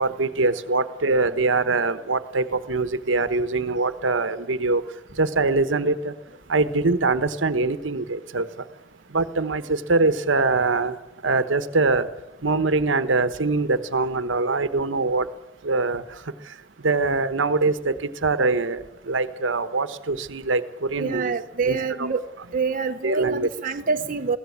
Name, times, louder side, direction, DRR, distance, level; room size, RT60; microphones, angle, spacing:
voice 1, 0.0-4.8 5.2-6.1 6.5-8.5 9.1-10.9 11.2-12.1 12.4-15.3 15.6-16.0 16.8-17.9 18.2-20.6 20.9-21.3 21.7-22.1 23.0-23.5, right 3 dB, 80° right, 13 dB, 1.2 m, -23 dB
voice 2, 21.0-22.2 22.5-24.4, right 5 dB, 45° right, 4 dB, 1.0 m, -26 dB
22.5 x 16.5 x 8.6 m, 0.99 s
head